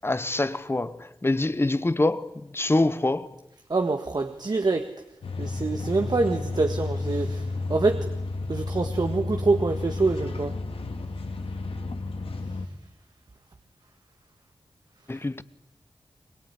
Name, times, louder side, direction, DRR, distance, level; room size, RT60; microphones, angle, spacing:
voice 1, 0.0-3.4 15.1-15.4, left 2 dB, 25° left, 1.1 m, -25 dB
voice 2, 3.7-4.9 5.4-8.1 8.5-10.5, right 3 dB, 45° right, 1.6 m, -25 dB
sound 1, 5.2-12.7, left 3 dB, 80° left, 2.7 m, -31 dB
23.5 x 22.5 x 9.9 m
wide cardioid pair, 80°, 10 cm